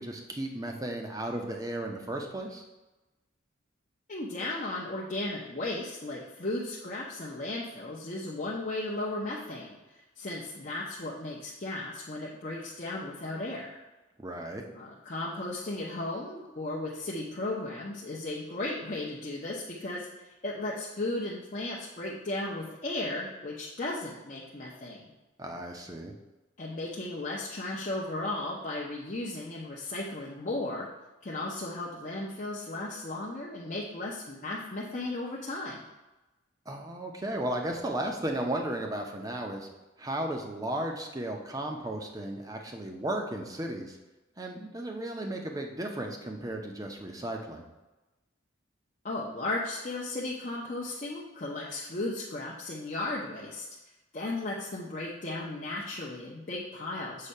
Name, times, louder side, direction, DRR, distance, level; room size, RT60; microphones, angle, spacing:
voice 1, 0.0-2.6 14.2-14.6 25.4-26.1 36.7-39.7 40.0-44.0 44.4-47.7, right 1 dB, 20° right, 2 dB, 0.6 m, -35 dB
voice 2, 4.1-13.8 14.7-25.1 26.6-30.9 31.2-35.8 49.0-53.7 54.1-57.3, left 2 dB, 40° left, -5 dB, 0.7 m, -35 dB
6.5 x 2.7 x 5.4 m, 1.1 s
head